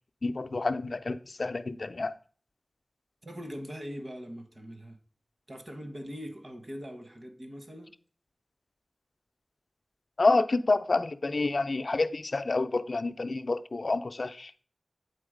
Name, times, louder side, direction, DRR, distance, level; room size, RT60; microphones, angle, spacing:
voice 1, 0.2-2.1 10.2-14.6, left 3 dB, 65° left, 0.4 m, -28 dB
voice 2, 3.2-5.0 5.5-7.9, equal, 50° right, 1.1 m, -41 dB
8.6 x 3.8 x 5.0 m
wide cardioid pair, 65°, 0 cm